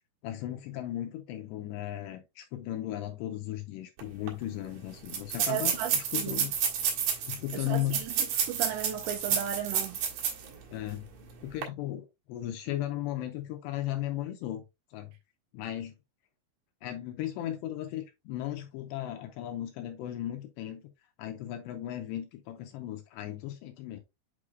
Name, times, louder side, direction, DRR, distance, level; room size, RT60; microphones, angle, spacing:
voice 1, 0.2-6.5 7.3-8.0 10.7-11.1 11.4-15.1 15.5-15.9 16.8-20.8 21.2-24.0, left 13 dB, 80° left, 2.6 m, -36 dB
sound 1, 4.0-4.1 4.3-4.4 5.1-10.5 10.9-11.0 11.5-11.6, right 8 dB, 65° right, 3.4 m, -30 dB
voice 2, 5.5-5.9 6.2-6.4 7.5-7.8 8.5-10.0, right 10 dB, 85° right, 2.5 m, -34 dB
8.4 x 4.8 x 2.3 m
omnidirectional pair, 5.5 m